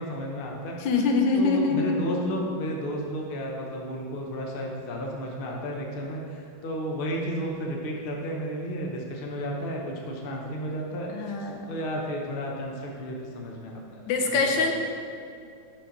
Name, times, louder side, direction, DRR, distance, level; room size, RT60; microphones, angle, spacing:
voice 1, 0.0-0.8 1.3-14.0 14.3-14.7, equal, 55° left, -1 dB, 0.6 m, -33 dB
voice 2, 0.8-1.9 11.1-11.7 14.1-14.7, left 4 dB, 75° left, 3 dB, 1.4 m, -24 dB
6.6 x 5.9 x 3.9 m, 2.4 s
omnidirectional pair, 2.2 m